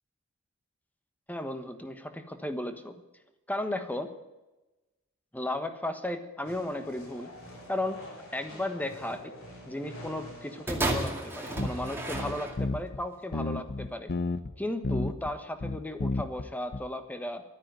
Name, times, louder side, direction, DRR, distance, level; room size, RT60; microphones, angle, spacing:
voice 1, 1.3-2.9 3.5-4.1 5.3-7.3 7.7-8.0 8.3-9.3 9.6-14.1 14.6-17.4, left 1 dB, 10° left, 8 dB, 1.2 m, -35 dB
sound 1, 6.4-12.4, left 1 dB, 65° left, 6.0 m, -47 dB
sound 2, 10.7-12.9 13.7-13.8, right 1 dB, 10° right, 2.2 m, -33 dB
sound 3, 11.6-13.0 13.3-14.5 14.8-15.3 15.6-16.5 16.7-16.8, left 2 dB, 50° left, 0.7 m, -31 dB
12.0 x 9.8 x 9.0 m, 1.0 s
head